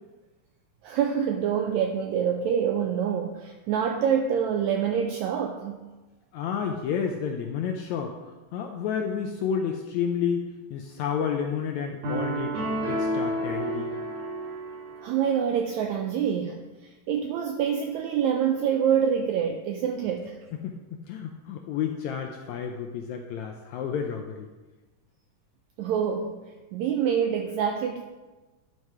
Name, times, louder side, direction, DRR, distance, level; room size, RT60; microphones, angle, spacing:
voice 1, 0.8-5.9 15.0-20.4 25.8-26.4 26.7-28.0, right 8 dB, 90° right, 5 dB, 1.6 m, -26 dB
voice 2, 6.3-8.2 8.5-13.9 20.6-24.5, left 7 dB, 80° left, 3 dB, 1.6 m, -31 dB
sound 1, 12.0-15.3, right 1 dB, 65° right, 3.8 m, -30 dB
10.5 x 5.5 x 4.7 m, 1.2 s
omnidirectional pair, 3.8 m